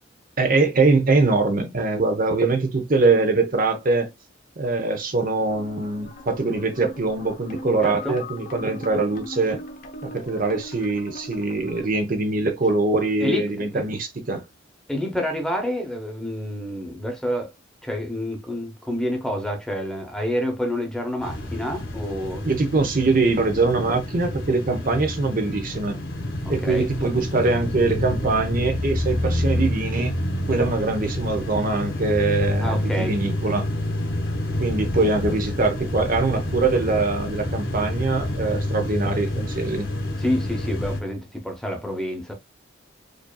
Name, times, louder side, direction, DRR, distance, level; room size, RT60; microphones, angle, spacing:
voice 1, 0.4-4.1 4.6-9.6 10.0-14.4 22.4-26.0 26.5-30.1 30.5-33.7 34.6-39.9, right 3 dB, 45° right, 0.8 m, -23 dB
sound 1, 5.5-11.9, left 1 dB, 40° left, 0.7 m, -40 dB
voice 2, 7.8-8.2 13.2-13.8 14.9-17.5 17.8-22.5 26.6-26.9 32.6-33.2 40.2-42.3, left 1 dB, 5° left, 0.9 m, -28 dB
sound 2, 21.2-41.0, left 1 dB, 75° left, 1.3 m, -28 dB
5.1 x 2.7 x 2.2 m
head